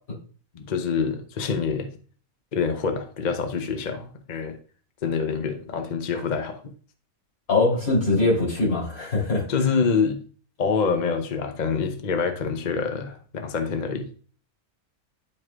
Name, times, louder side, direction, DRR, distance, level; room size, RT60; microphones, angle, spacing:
voice 1, 0.5-1.9 2.5-4.6 5.0-6.7 9.5-10.2 10.6-14.1, left 5 dB, 40° left, 0.8 m, -26 dB
voice 2, 7.5-9.7, left 2 dB, 80° left, 3.9 m, -22 dB
11.0 x 4.8 x 2.4 m
omnidirectional pair, 1.5 m